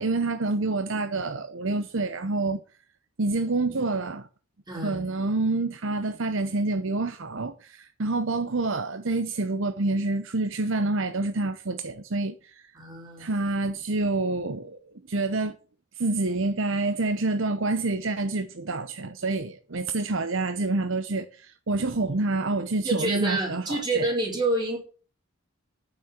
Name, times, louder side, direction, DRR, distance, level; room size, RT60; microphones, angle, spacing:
voice 1, 0.0-2.6 3.2-4.3 4.8-12.6 13.2-14.8 15.1-15.6 16.0-24.1, right 2 dB, 60° right, 0.8 m, -27 dB
voice 2, 4.7-5.1 12.7-13.3 22.8-24.8, right 2 dB, 20° right, 4.8 m, -28 dB
9.6 x 7.3 x 8.3 m
head